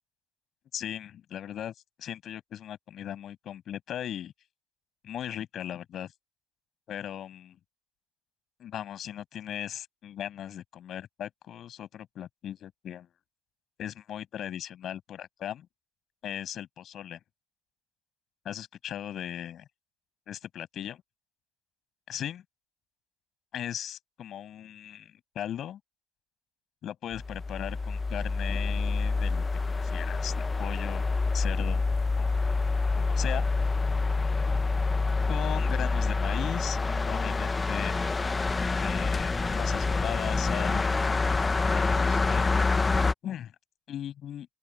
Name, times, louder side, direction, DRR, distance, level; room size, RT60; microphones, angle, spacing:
voice 1, 0.7-1.7 2.0-4.3 5.0-6.1 6.9-7.6 8.6-13.1 13.8-15.7 16.2-17.2 18.4-19.6 20.3-21.0 22.1-22.4 23.5-25.8 26.8-29.4 29.8-31.9 32.2-32.5 33.0-33.5 35.3-38.2 38.7-40.9 41.7-42.6 43.2-43.5 43.9-44.5, left 10 dB, 45° left, 7.9 m, -38 dB
sound 1, 27.1-43.1, left 3 dB, 15° left, 0.9 m, -27 dB
open air
cardioid pair, 150°, 0 cm